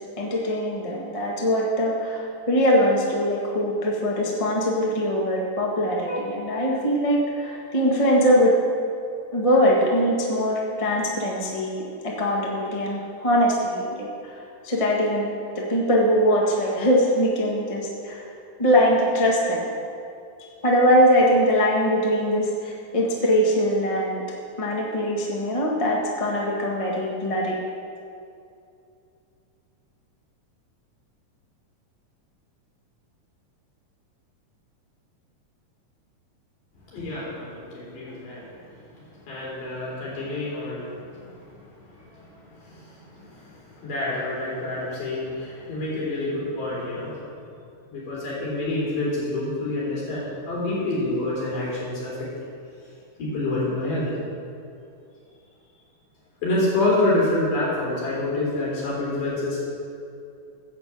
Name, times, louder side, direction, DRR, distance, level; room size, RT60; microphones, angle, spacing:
voice 1, 0.2-8.5 9.3-14.1 14.6-18.3 18.6-19.7 20.6-24.2 24.6-27.5, equal, 55° left, -2 dB, 0.3 m, -22 dB
voice 2, 36.9-38.6 39.2-41.4 41.9-47.2 47.9-52.3 53.2-54.2 56.4-59.6, left 2 dB, 85° left, -6 dB, 5.1 m, -27 dB
10.0 x 7.1 x 7.7 m, 2.5 s
omnidirectional pair, 3.8 m